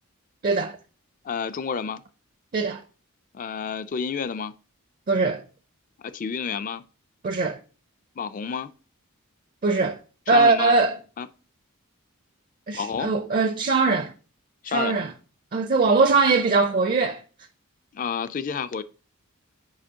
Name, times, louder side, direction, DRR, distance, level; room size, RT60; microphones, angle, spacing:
voice 1, 0.4-0.8 2.5-2.8 5.1-5.4 7.2-7.6 9.6-10.0 10.3-11.0 12.7-14.1 14.7-15.1 15.5-17.2, right 4 dB, 40° right, 0.4 m, -21 dB
voice 2, 1.2-2.0 3.3-4.5 6.1-6.8 8.2-8.7 10.3-10.7 11.2-11.3 12.7-13.1 14.6-15.0 17.9-18.8, left 6 dB, 35° left, 0.3 m, -29 dB
7.6 x 5.0 x 2.8 m
head